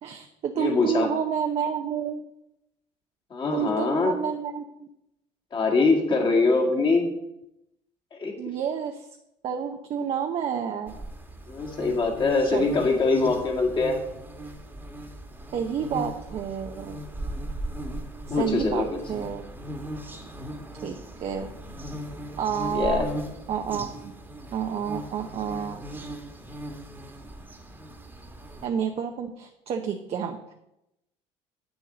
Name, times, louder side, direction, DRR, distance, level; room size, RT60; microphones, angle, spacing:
voice 1, 0.0-2.2 3.5-4.9 8.4-9.1 9.4-10.9 12.5-12.7 15.5-17.0 18.3-19.4 20.8-21.5 22.4-23.0 23.5-24.0 24.5-25.8 28.6-30.4, right 7 dB, 50° right, 5 dB, 0.7 m, -29 dB
voice 2, 0.6-1.1 3.3-4.1 5.5-7.1 8.2-8.4 11.5-14.0 18.3-18.9 22.7-23.1, left 3 dB, 35° left, 0 dB, 1.9 m, -23 dB
sound 1, 10.9-28.7, right 1 dB, 15° right, 1.4 m, -38 dB
8.1 x 7.0 x 3.9 m, 0.85 s
supercardioid pair, 95°, 13 cm